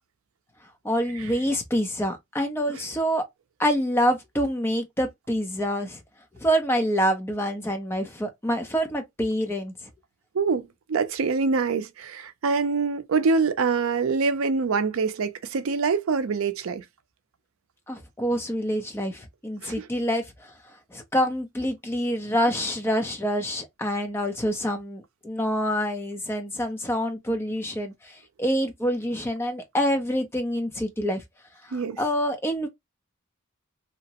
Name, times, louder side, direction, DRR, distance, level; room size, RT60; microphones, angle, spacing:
voice 1, 0.8-3.2 3.6-6.0 6.4-9.7 17.9-20.5 20.9-31.2 31.7-32.7, equal, 10° left, 0.6 m, -26 dB
voice 2, 10.3-16.8 19.6-19.9 31.7-32.0, right 4 dB, 70° right, 0.4 m, -25 dB
2.8 x 2.0 x 2.8 m
head